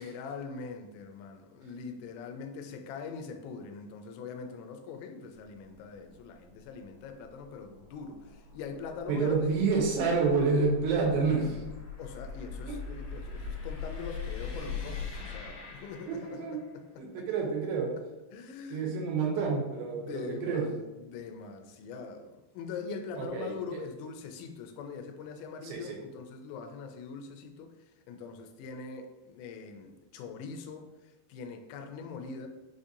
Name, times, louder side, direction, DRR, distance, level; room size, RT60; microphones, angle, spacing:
voice 1, 0.0-9.5 12.0-17.3 18.3-18.9 19.9-27.7 28.1-32.5, left 5 dB, 90° left, 5 dB, 2.8 m, -42 dB
sound 1, 5.3-16.7, left 5 dB, 65° left, 2.7 m, -42 dB
voice 2, 9.1-11.6 12.7-12.8 16.1-16.6 17.0-17.9 18.7-20.7 23.2-23.5 25.6-26.0, right 4 dB, 85° right, -1 dB, 2.9 m, -28 dB
6.6 x 2.6 x 2.5 m, 1.1 s
omnidirectional pair, 5.1 m